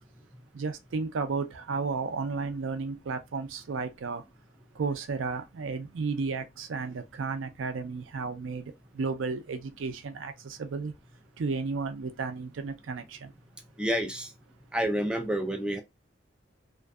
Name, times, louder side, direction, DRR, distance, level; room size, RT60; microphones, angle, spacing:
voice 1, 0.5-4.2 4.7-10.9 11.4-13.3, right 4 dB, 85° right, 0.5 m, -33 dB
voice 2, 13.8-14.3 14.7-15.8, equal, 5° right, 0.3 m, -29 dB
2.5 x 2.3 x 2.3 m
head